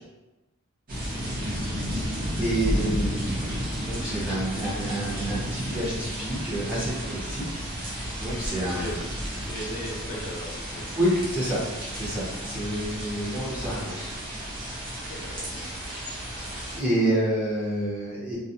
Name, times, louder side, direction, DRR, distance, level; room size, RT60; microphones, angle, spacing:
sound 1, 0.9-16.8, equal, 40° right, 0.6 m, -32 dB
voice 1, 1.0-1.3 8.2-9.0 9.4-10.9 15.1-15.6, equal, 45° left, -5 dB, 0.7 m, -38 dB
voice 2, 2.0-7.5 7.8-8.9 10.9-11.6 11.9-14.1 16.8-18.4, right 1 dB, 5° right, -9 dB, 0.8 m, -29 dB
2.3 x 2.1 x 2.7 m, 1.1 s
head